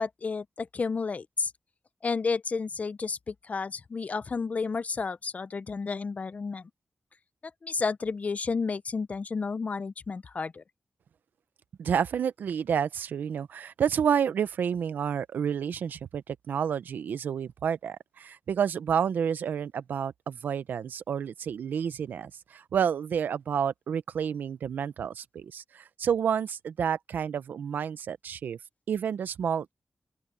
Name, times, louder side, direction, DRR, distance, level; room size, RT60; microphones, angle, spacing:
voice 1, 0.0-1.5 2.0-6.7 7.6-10.6, left 4 dB, 50° left, 0.6 m, -31 dB
voice 2, 11.8-28.6 28.9-29.7, right 8 dB, 90° right, 0.8 m, -30 dB
open air
cardioid pair, 55°, 3 cm